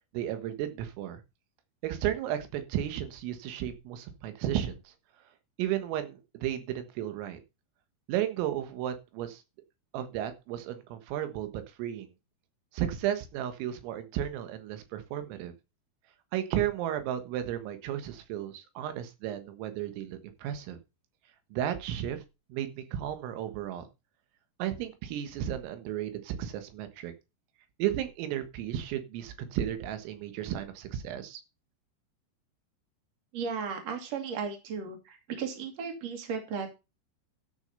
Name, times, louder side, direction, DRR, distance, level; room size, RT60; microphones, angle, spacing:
voice 1, 0.1-1.2 1.8-4.9 5.6-7.4 8.1-9.4 9.9-12.1 12.7-15.5 16.3-20.8 21.5-22.2 22.5-23.8 24.6-27.1 27.8-31.4, right 11 dB, 90° right, 9 dB, 4.1 m, -34 dB
voice 2, 33.3-36.7, right 6 dB, 40° right, 4 dB, 3.0 m, -35 dB
13.0 x 6.4 x 5.5 m, 0.27 s
omnidirectional pair, 5.8 m